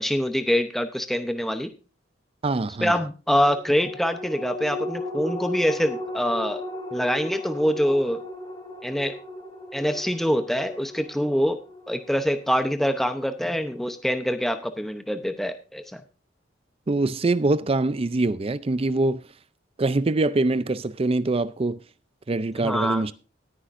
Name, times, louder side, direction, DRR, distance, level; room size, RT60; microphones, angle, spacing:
voice 1, 0.0-1.7 2.8-6.6 6.9-8.2 8.8-9.1 9.7-11.6 11.9-16.0 22.6-23.0, equal, ahead, 0.7 m, -25 dB
voice 2, 2.4-3.0 16.9-19.2 19.8-21.8 22.3-23.1, right 2 dB, 30° right, 0.5 m, -24 dB
sound 1, 3.4-14.2 14.6-14.7, left 1 dB, 25° left, 2.9 m, -37 dB
18.0 x 10.0 x 2.6 m
head